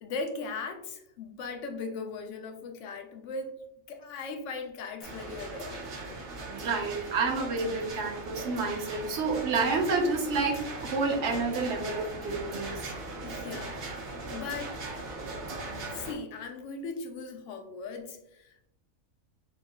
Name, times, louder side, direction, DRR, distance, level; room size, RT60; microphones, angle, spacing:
voice 1, 0.0-3.6 3.9-6.2 13.2-14.8 15.9-18.7, left 4 dB, 70° left, 4 dB, 0.9 m, -39 dB
sound 1, 5.0-16.1, right 2 dB, 90° right, 1.3 m, -39 dB
voice 2, 6.5-12.8, right 4 dB, 60° right, 2 dB, 0.9 m, -29 dB
5.4 x 2.0 x 2.2 m, 0.79 s
omnidirectional pair, 1.4 m